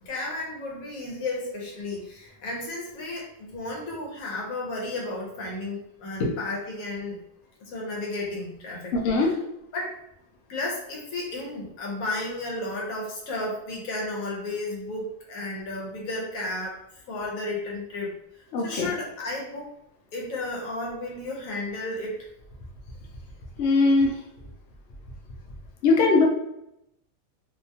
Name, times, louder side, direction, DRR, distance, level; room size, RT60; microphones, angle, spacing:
voice 1, 0.0-7.2 7.6-9.0 9.2-9.3 9.7-10.0 10.5-16.8 17.1-18.1 18.6-19.7 20.1-22.3, left 2 dB, 90° left, -2 dB, 1.2 m, -33 dB
voice 2, 8.9-9.3 18.5-18.9 23.6-24.1 25.8-26.2, left 3 dB, 65° left, 0 dB, 0.8 m, -20 dB
2.8 x 2.2 x 2.7 m, 0.82 s
omnidirectional pair, 1.4 m